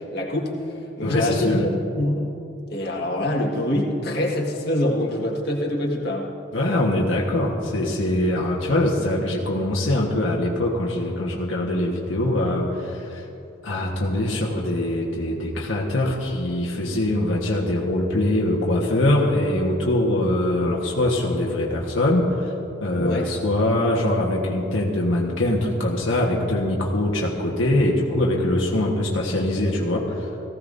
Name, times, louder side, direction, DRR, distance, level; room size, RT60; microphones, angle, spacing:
voice 1, 0.1-0.5 1.0-1.7 1.9-2.3 2.7-6.3 23.0-23.3, left 1 dB, 55° left, -2 dB, 1.7 m, -24 dB
voice 2, 1.0-1.7 6.5-13.3 13.6-22.5 22.8-30.3, left 1 dB, 80° left, -2 dB, 1.4 m, -23 dB
19.0 x 15.5 x 2.7 m, 2.8 s
head